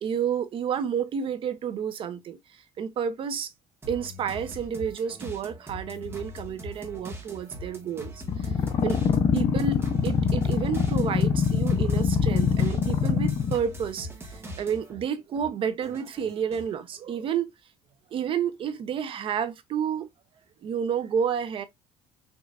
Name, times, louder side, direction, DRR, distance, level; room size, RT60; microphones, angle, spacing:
voice 1, 0.0-3.5 3.9-8.5 8.8-9.0 9.3-17.5 18.1-20.1 20.6-21.7, right 7 dB, 45° right, 0.6 m, -30 dB
sound 1, 3.8-15.0 15.4-16.7, equal, 20° right, 1.4 m, -42 dB
sound 2, 8.3-13.6, left 6 dB, 40° left, 0.6 m, -23 dB
5.3 x 3.0 x 2.4 m
cardioid pair, 130°, 12 cm